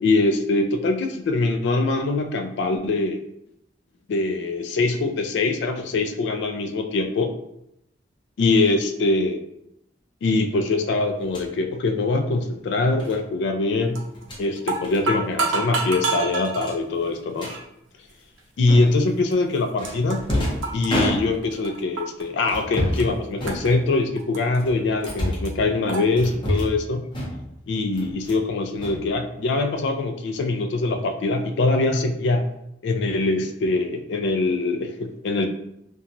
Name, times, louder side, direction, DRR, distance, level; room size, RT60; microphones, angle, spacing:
voice 1, 0.0-3.2 4.1-7.3 8.4-9.4 10.2-14.0 14.4-17.5 18.6-20.2 20.7-27.0 27.7-32.5 32.8-35.5, left 3 dB, 65° left, 5 dB, 0.3 m, -23 dB
sound 1, 11.2-11.5 13.0-13.2 14.1-14.4 14.8-15.0 15.3-15.5 15.8-15.9 16.6-17.6 18.7-19.1 19.8-21.6 22.5-23.1 23.4-24.1 24.6-25.5 26.2-26.8 27.1-27.6 27.9-28.5 28.8-29.6, equal, 25° left, 0.7 m, -29 dB
sound 2, 13.9-14.2 14.6-16.7 17.4-17.6 18.4-18.5 19.3-19.4 19.6-20.4 20.6-22.2 22.5-23.0 23.5-24.6 25.0-25.1 25.4-25.5 25.9-26.0, right 4 dB, 85° right, 0.5 m, -28 dB
2.9 x 2.2 x 2.5 m, 0.78 s
head